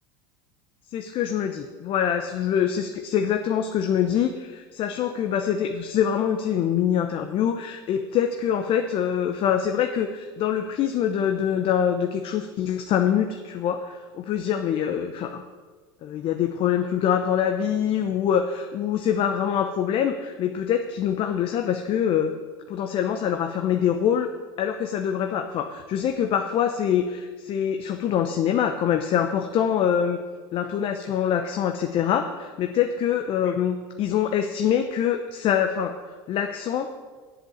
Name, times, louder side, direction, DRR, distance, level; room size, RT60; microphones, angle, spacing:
voice 1, 0.9-15.4 16.0-22.3 22.7-24.3 24.6-30.2 30.5-36.0 36.3-36.9, left 9 dB, 50° left, 6 dB, 0.9 m, -24 dB
8.0 x 7.9 x 7.9 m, 1.5 s
hypercardioid pair, 90°, 12 cm